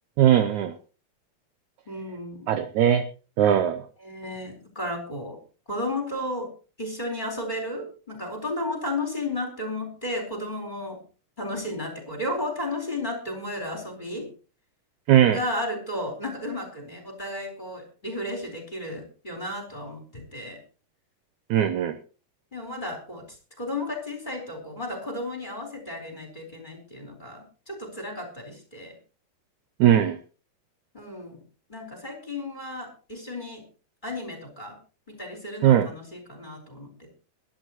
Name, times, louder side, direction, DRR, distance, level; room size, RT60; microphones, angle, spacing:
voice 1, 0.2-0.7 2.5-3.0 3.4-3.9 15.1-15.4 21.5-22.0 29.8-30.2 35.6-35.9, right 10 dB, 75° right, 10 dB, 1.8 m, -19 dB
voice 2, 1.9-2.6 4.0-5.4 5.7-6.5 6.8-11.0 11.4-14.3 15.3-20.6 22.5-29.0 30.9-31.4 31.7-33.6 34.0-34.8 35.1-37.1, left 1 dB, 10° left, 3 dB, 3.9 m, -33 dB
22.5 x 11.0 x 3.0 m, 0.36 s
omnidirectional pair, 4.3 m